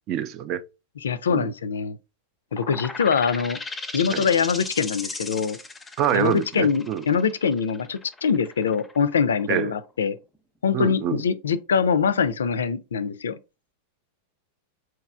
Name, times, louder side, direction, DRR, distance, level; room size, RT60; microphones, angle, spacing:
voice 1, 0.1-0.6 1.3-1.5 4.1-4.3 6.0-7.0 9.5-9.7 10.7-11.2, right 10 dB, 40° right, 0.4 m, -26 dB
voice 2, 1.0-2.0 2.5-3.6 3.9-5.6 6.1-10.2 10.6-13.4, left 6 dB, 65° left, 0.4 m, -23 dB
sound 1, 2.5-9.9, left 3 dB, 10° left, 0.6 m, -37 dB
4.6 x 3.0 x 2.4 m
figure-of-eight pair, 90°, 0 cm